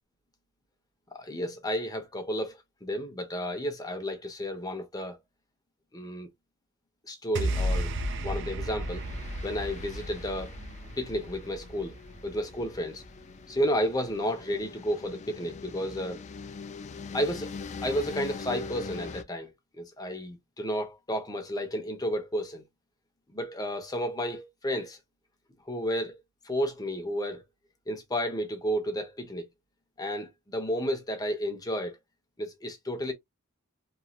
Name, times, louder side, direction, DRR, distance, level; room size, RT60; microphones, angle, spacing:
voice 1, 1.1-5.2 5.9-6.3 7.1-7.9 8.2-9.0 9.4-10.6 11.0-12.0 12.2-13.0 13.5-16.2 17.1-17.5 17.8-22.6 23.3-25.0 25.6-26.2 26.4-27.4 27.9-29.5 30.0-32.0 32.4-33.1, equal, 20° left, 0.8 m, -32 dB
sound 1, 7.4-13.8, right 1 dB, 60° right, 0.5 m, -34 dB
sound 2, 8.8-19.2, left 4 dB, 35° left, 0.3 m, -42 dB
3.1 x 2.7 x 2.2 m
head